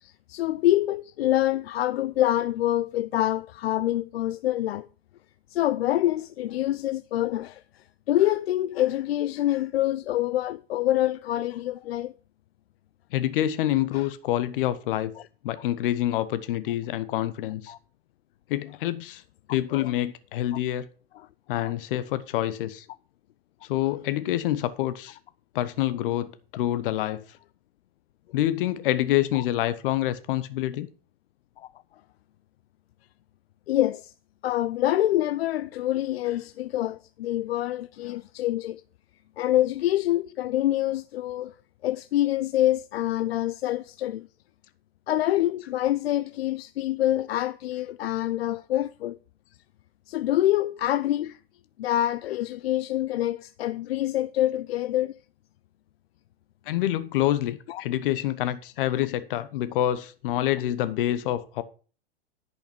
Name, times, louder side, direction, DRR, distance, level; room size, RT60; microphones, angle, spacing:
voice 1, 0.3-4.9 5.5-12.1 13.9-14.1 15.2-15.3 17.7-17.8 19.5-19.9 21.6-21.7 29.3-29.4 31.6-31.7 33.7-34.1 34.4-38.8 39.4-41.6 41.8-44.3 45.1-49.2 50.1-51.3 51.8-55.2 57.7-57.8, left 14 dB, 75° left, 0.5 m, -26 dB
voice 2, 13.1-15.1 15.4-17.7 18.5-19.2 19.5-20.9 21.5-22.8 23.7-25.2 25.5-27.2 28.3-30.9 56.7-61.6, left 13 dB, 60° left, 1.0 m, -27 dB
10.5 x 5.7 x 5.9 m
hypercardioid pair, 115°, 31 cm